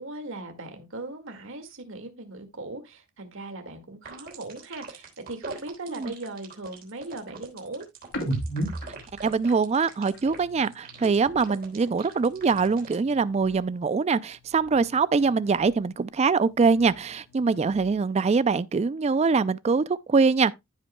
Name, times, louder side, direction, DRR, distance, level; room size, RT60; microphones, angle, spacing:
voice 1, 0.0-7.8, right 2 dB, 65° right, 2.0 m, -39 dB
sound 1, 4.0-13.0, right 4 dB, 45° right, 3.6 m, -42 dB
sound 2, 8.1-11.7 12.0-13.8 14.1-16.0 16.3-18.2, right 1 dB, 65° left, 2.6 m, -38 dB
voice 2, 9.2-20.5, right 4 dB, 30° right, 0.3 m, -23 dB
15.0 x 5.4 x 2.2 m
head